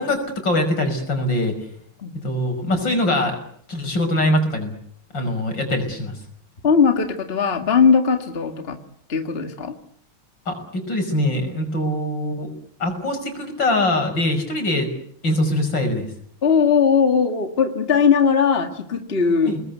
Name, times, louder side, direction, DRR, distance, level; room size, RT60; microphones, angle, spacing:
voice 1, 0.0-1.5 2.2-3.4 3.7-4.7 5.1-6.1 10.5-12.5 12.8-14.9 15.2-16.1 19.4-19.6, left 1 dB, 65° left, 5 dB, 6.3 m, -22 dB
voice 2, 6.6-8.8 9.1-9.7 16.4-19.6, left 6 dB, 30° left, 6 dB, 2.1 m, -19 dB
28.5 x 20.5 x 8.2 m, 0.64 s
omnidirectional pair, 2.2 m